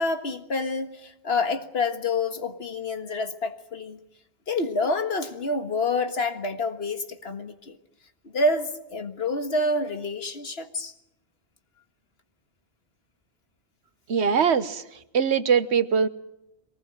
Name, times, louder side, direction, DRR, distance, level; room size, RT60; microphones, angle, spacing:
voice 1, 0.0-4.0 4.5-7.8 8.2-10.9, left 2 dB, 70° left, 7 dB, 1.9 m, -28 dB
voice 2, 14.1-14.8 15.1-16.1, right 6 dB, 85° right, 13 dB, 1.3 m, -21 dB
23.0 x 19.5 x 8.8 m, 0.87 s
omnidirectional pair, 1.1 m